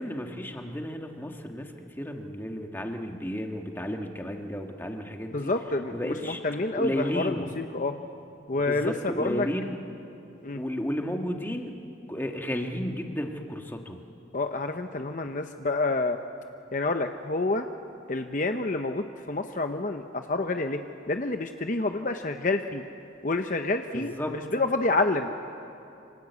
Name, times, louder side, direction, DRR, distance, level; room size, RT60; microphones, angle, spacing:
voice 1, 0.0-5.5 5.9-6.4 6.7-7.5 8.5-9.8 10.5-11.7 12.1-14.0 23.9-24.3, equal, 10° left, 3 dB, 1.7 m, -33 dB
voice 2, 5.3-8.0 8.5-9.5 10.4-10.6 14.3-16.2 16.7-17.7 18.1-22.8 23.2-25.3, left 2 dB, 40° left, 6 dB, 0.8 m, -28 dB
28.0 x 26.0 x 8.2 m, 2.7 s
head